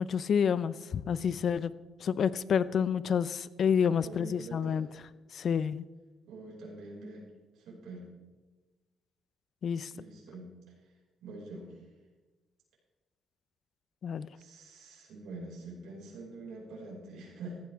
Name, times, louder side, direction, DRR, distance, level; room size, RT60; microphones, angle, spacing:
voice 1, 0.0-1.7 2.0-4.9 5.3-5.8 9.6-9.9 14.0-14.3, left 7 dB, 60° left, 16 dB, 0.6 m, -29 dB
voice 2, 3.8-4.9 6.3-7.3 7.5-8.0 9.9-10.5 11.2-11.8 14.3-17.6, right 2 dB, 85° right, -4 dB, 5.6 m, -45 dB
15.5 x 14.5 x 3.6 m, 1.2 s
cardioid pair, 90°, 0 cm